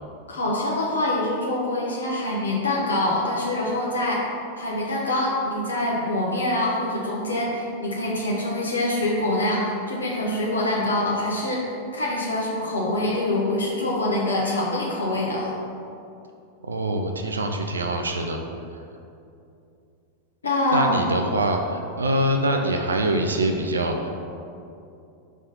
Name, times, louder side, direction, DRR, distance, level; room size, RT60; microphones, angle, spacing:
voice 1, 0.3-4.2 4.6-11.6 11.9-15.5 20.4-21.0, left 1 dB, 75° left, -4 dB, 1.0 m, -25 dB
voice 2, 16.6-18.4 20.7-24.2, right 1 dB, 75° right, 3 dB, 0.4 m, -24 dB
5.3 x 3.6 x 5.6 m, 2.6 s
figure-of-eight pair, 90°, 0 cm